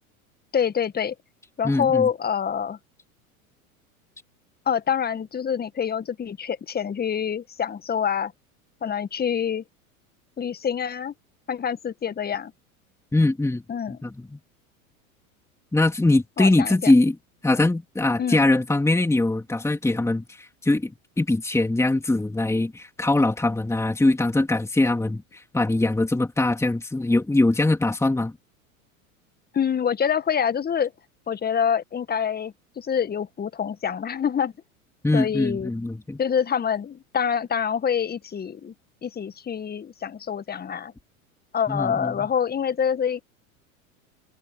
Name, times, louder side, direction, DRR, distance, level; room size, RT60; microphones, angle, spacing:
voice 1, 0.5-1.2 1.6-2.8 4.7-8.3 8.8-9.6 10.4-11.1 11.5-12.5 13.7-14.0 16.4-16.9 18.2-18.5 29.5-30.9 31.3-34.5 35.1-35.7 36.2-38.7 39.0-40.9 41.5-43.2, left 7 dB, 20° left, 1.8 m, -26 dB
voice 2, 1.6-2.1 13.1-13.6 13.9-14.4 15.7-17.2 17.4-20.9 21.2-28.3 35.0-36.2 41.7-42.3, left 2 dB, 5° left, 3.0 m, -22 dB
hypercardioid pair, 85°, 42 cm